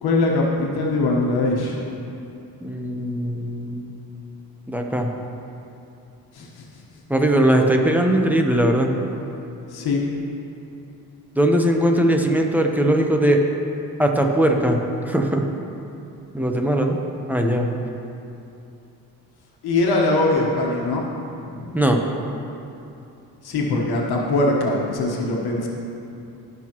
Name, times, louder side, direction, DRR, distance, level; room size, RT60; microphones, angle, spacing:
voice 1, 0.0-1.9 6.3-6.6 9.7-10.0 19.6-21.1 21.3-21.7 23.4-25.7, left 2 dB, 80° left, -2 dB, 1.4 m, -22 dB
voice 2, 2.6-3.8 4.7-5.1 7.1-8.9 11.3-13.4 14.0-14.8 15.0-15.4 16.3-17.0 17.3-17.7 21.7-22.0, right 1 dB, 5° right, 2 dB, 0.9 m, -19 dB
17.0 x 6.1 x 3.0 m, 2.8 s
cardioid pair, 95°, 38 cm